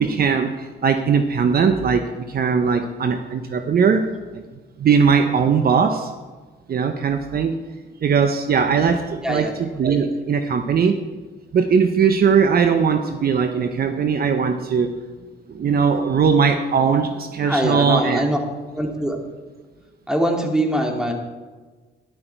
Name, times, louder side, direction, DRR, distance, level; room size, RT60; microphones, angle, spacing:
voice 1, 0.0-4.4 4.8-6.1 6.7-7.6 8.0-11.0 11.5-15.0 15.5-18.3, right 6 dB, 50° right, 7 dB, 0.9 m, -19 dB
voice 2, 17.4-18.4 18.7-19.2 20.1-21.1, equal, 5° right, 1 dB, 2.5 m, -22 dB
12.5 x 11.0 x 4.5 m, 1.3 s
cardioid pair, 90°, 20 cm